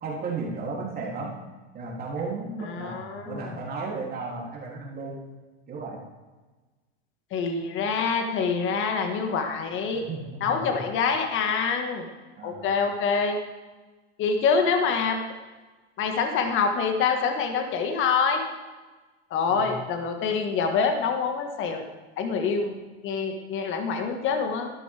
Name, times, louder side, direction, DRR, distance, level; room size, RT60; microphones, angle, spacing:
voice 1, 0.0-1.4 1.7-5.2 5.7-6.0 10.1-10.8 12.4-12.8 19.5-19.7, right 3 dB, 30° right, -3 dB, 3.0 m, -34 dB
voice 2, 2.6-3.6 7.3-10.0 10.4-12.1 12.4-13.4 14.2-15.2 16.0-18.4 19.3-21.8 22.2-22.8 23.0-24.7, left 5 dB, 35° left, 5 dB, 1.7 m, -26 dB
13.0 x 12.5 x 3.5 m, 1.3 s
hypercardioid pair, 115°, 33 cm